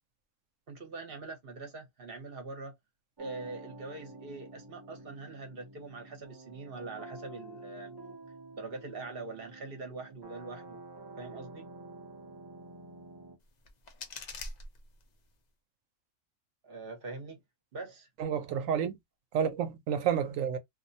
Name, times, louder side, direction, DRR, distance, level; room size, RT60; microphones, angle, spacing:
voice 1, 0.7-2.8 3.2-7.9 8.6-10.8 11.2-11.7 16.6-17.4 17.7-18.1 18.5-18.6, right 3 dB, 50° right, 0.9 m, -43 dB
sound 1, 3.2-13.4, right 2 dB, 35° right, 0.4 m, -49 dB
sound 2, 13.4-15.4, left 3 dB, 55° left, 0.5 m, -45 dB
voice 2, 18.2-19.0 19.3-20.6, right 8 dB, 85° right, 1.0 m, -30 dB
2.6 x 2.0 x 2.6 m
omnidirectional pair, 1.3 m